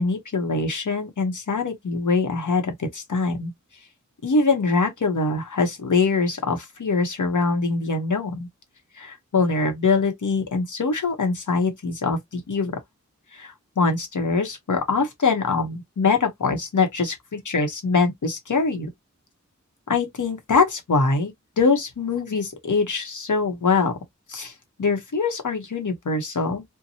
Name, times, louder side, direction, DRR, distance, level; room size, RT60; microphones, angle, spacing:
voice 1, 0.0-3.5 4.2-8.5 9.0-12.8 13.3-18.9 19.9-23.9 24.3-24.5 24.8-26.6, left 4 dB, 75° left, 0.9 m, -23 dB
2.8 x 2.1 x 2.7 m
wide cardioid pair, 60°, 30 cm